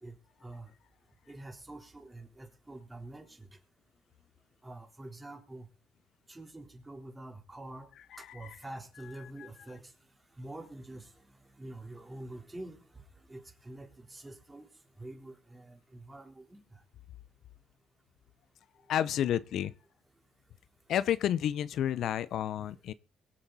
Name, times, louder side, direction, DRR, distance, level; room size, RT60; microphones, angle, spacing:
voice 1, 1.3-3.5 4.6-5.7 6.3-7.9 8.2-9.9 10.4-11.1 11.6-12.8 13.3-14.7 15.0-16.6, right 1 dB, 15° right, 3.8 m, -46 dB
voice 2, 18.9-19.7 20.9-22.9, left 10 dB, 75° left, 0.6 m, -30 dB
23.5 x 7.8 x 4.1 m
cardioid pair, 90°, 0 cm